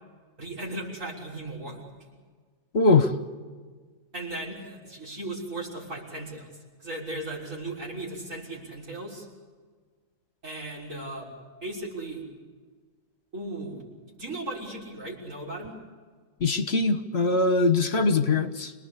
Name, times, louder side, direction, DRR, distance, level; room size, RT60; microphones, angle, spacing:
voice 1, 0.4-1.8 4.1-6.5 6.8-9.3 10.4-11.3 11.6-12.2 13.3-13.8 14.1-15.7, right 2 dB, 70° right, -3 dB, 6.6 m, -36 dB
voice 2, 2.7-3.1 16.4-18.7, left 3 dB, 50° left, 9 dB, 1.5 m, -22 dB
27.0 x 19.0 x 8.4 m, 1.5 s
omnidirectional pair, 1.4 m